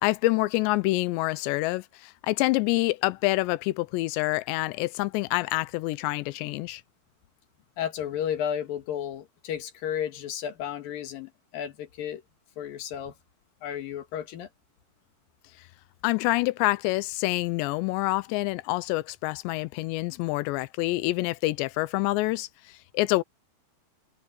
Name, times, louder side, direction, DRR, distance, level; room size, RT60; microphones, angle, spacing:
voice 1, 0.0-6.8 16.0-23.2, left 19 dB, 80° left, 2.8 m, -27 dB
voice 2, 7.8-12.2 12.6-13.1 13.6-14.5, left 9 dB, 60° left, 3.1 m, -33 dB
omnidirectional pair, 5.2 m